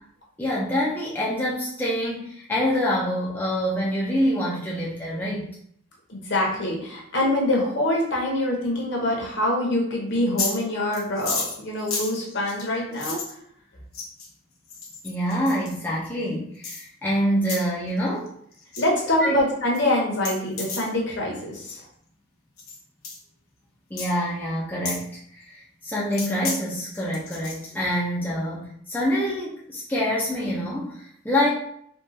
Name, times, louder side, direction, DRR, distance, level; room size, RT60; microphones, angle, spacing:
voice 1, 0.4-5.5 15.0-18.3 19.2-19.4 23.9-31.5, equal, 10° left, -7 dB, 0.4 m, -26 dB
voice 2, 6.1-13.2 18.8-21.8, left 1 dB, 55° left, -2 dB, 0.9 m, -25 dB
sound 1, 10.1-10.6 10.9-13.3 13.9-14.3 14.7-15.8 16.6-16.8 17.4-17.6 18.0-18.3 18.5-18.8 19.2-19.3 19.7-19.8 20.1-20.9 21.5-21.8 22.6-22.8 23.0-23.2 24.0-24.1 24.9-25.0 26.1-26.6 26.9-27.7, left 4 dB, 85° left, 0.9 m, -32 dB
3.7 x 2.3 x 2.7 m, 0.67 s
head